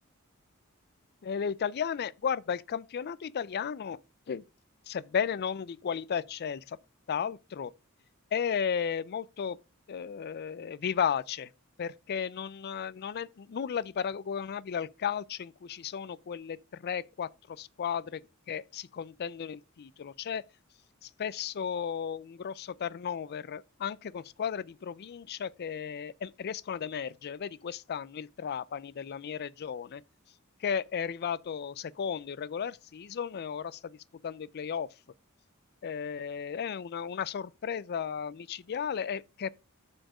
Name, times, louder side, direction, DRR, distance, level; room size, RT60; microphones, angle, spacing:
voice 1, 1.2-4.0 4.3-4.4 4.9-6.8 7.1-7.7 8.3-9.6 9.9-11.5 11.8-18.2 18.5-20.4 21.0-30.0 30.6-34.0 34.2-34.9 35.8-39.5, left 7 dB, 50° left, 0.4 m, -34 dB
7.6 x 4.4 x 4.9 m
head